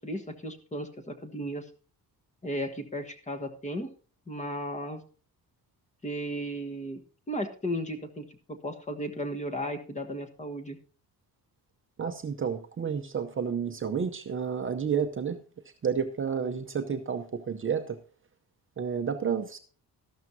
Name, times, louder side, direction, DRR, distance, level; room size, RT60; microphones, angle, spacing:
voice 1, 0.0-1.7 2.4-3.9 4.3-5.0 6.0-7.0 7.3-10.8, equal, 20° left, 7 dB, 1.3 m, -35 dB
voice 2, 12.0-15.4 15.8-18.0 18.8-19.6, right 7 dB, 30° right, 6 dB, 0.7 m, -30 dB
13.5 x 12.0 x 2.7 m, 0.38 s
wide cardioid pair, 180°, 39 cm